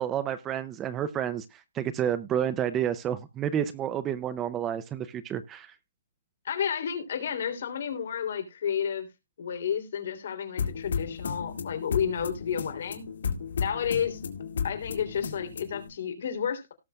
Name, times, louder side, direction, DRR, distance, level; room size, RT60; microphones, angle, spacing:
voice 1, 0.0-5.7, right 9 dB, 10° right, 14 dB, 0.4 m, -30 dB
voice 2, 6.4-9.1 9.4-13.1 13.6-14.2 14.6-16.7, left 8 dB, 55° left, 7 dB, 3.1 m, -31 dB
sound 1, 10.6-15.9, left 6 dB, 75° left, 2.1 m, -34 dB
18.0 x 6.6 x 2.3 m, 0.23 s
hypercardioid pair, 175°, 0 cm